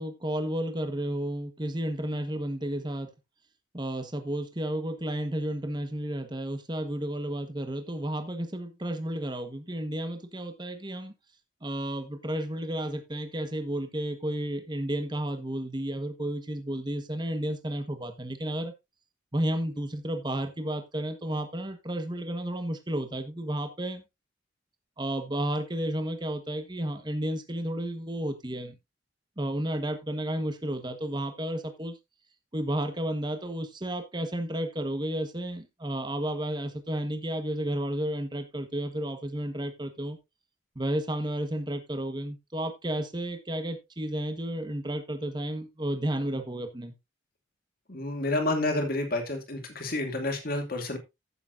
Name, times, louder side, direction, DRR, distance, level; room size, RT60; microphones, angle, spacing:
voice 1, 0.0-3.1 3.7-11.1 11.6-18.7 19.3-24.0 25.0-28.7 29.4-32.0 32.5-40.2 40.7-46.9, right 1 dB, 20° right, 1.4 m, -32 dB
voice 2, 47.9-51.0, left 2 dB, 50° left, 2.5 m, -29 dB
15.0 x 7.1 x 2.7 m
head